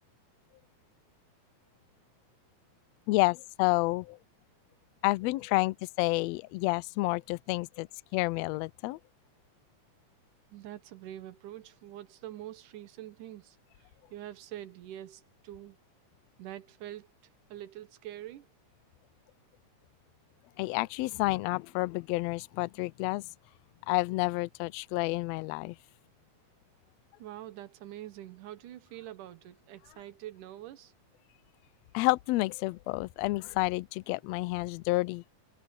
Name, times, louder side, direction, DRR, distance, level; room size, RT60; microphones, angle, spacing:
voice 1, 3.1-4.2 5.0-7.9 8.1-9.0 20.6-23.2 23.9-25.8 31.9-35.2, left 22 dB, 90° left, 1.5 m, -29 dB
voice 2, 10.5-15.8 16.4-17.1 17.5-18.5 27.2-30.9, right 13 dB, 85° right, 2.7 m, -45 dB
omnidirectional pair, 3.5 m